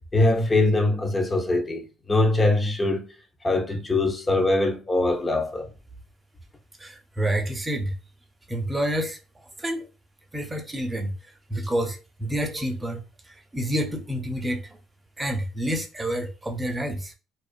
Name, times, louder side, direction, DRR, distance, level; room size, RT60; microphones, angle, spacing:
voice 1, 0.1-1.8 2.1-3.0 3.4-5.7, left 2 dB, 25° left, 0.6 m, -22 dB
voice 2, 6.8-7.9 8.5-9.2 9.6-9.9 10.3-11.1 11.5-14.8 15.2-17.1, right 1 dB, 15° right, 0.6 m, -28 dB
2.4 x 2.3 x 2.4 m
cardioid pair, 85°, 0 cm